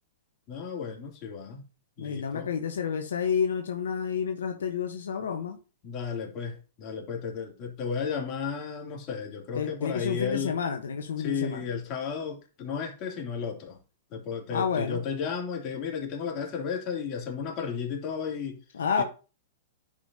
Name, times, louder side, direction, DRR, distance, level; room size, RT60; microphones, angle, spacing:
voice 1, 0.5-1.6 2.0-2.5 5.8-10.6 11.2-13.8 14.1-18.6 19.0-19.1, left 6 dB, 40° left, 2.7 m, -33 dB
voice 2, 2.0-5.6 9.5-11.6 14.5-15.0 18.7-19.0, left 6 dB, 80° left, 1.0 m, -29 dB
10.0 x 5.1 x 2.8 m
hypercardioid pair, 115°, 0 cm